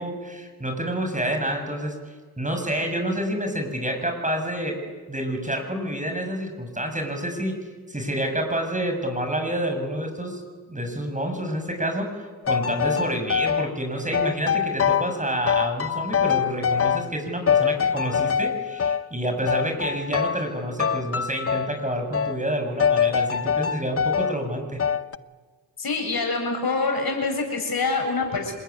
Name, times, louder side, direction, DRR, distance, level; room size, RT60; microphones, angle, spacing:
voice 1, 0.0-1.9 2.4-4.8 5.1-7.6 7.9-10.4 10.7-24.8, right 1 dB, 15° right, 5 dB, 7.3 m, -28 dB
sound 1, 12.5-13.7 14.1-15.2 15.5-17.2 17.5-19.0 19.5-20.5 20.8-21.8 22.1-22.4 22.8-24.4 24.8-25.2, left 7 dB, 30° left, 0.8 m, -24 dB
voice 2, 25.8-28.5, left 3 dB, 55° left, 3 dB, 7.2 m, -25 dB
27.0 x 21.0 x 9.7 m, 1.4 s
supercardioid pair, 40°, 44 cm